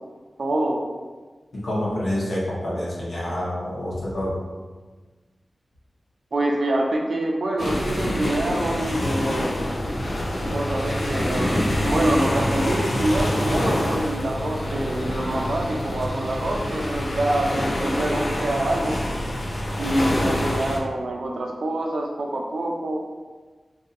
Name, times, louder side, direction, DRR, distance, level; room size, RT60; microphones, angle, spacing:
voice 1, 0.4-0.8 6.3-9.5 10.4-18.9 19.8-23.0, right 1 dB, 75° right, 0 dB, 0.5 m, -26 dB
voice 2, 1.5-4.4, left 1 dB, 85° left, -7 dB, 1.1 m, -27 dB
sound 1, 7.6-20.8, left 1 dB, 55° left, 0.5 m, -26 dB
2.7 x 2.6 x 4.0 m, 1.3 s
cardioid pair, 50°, 0 cm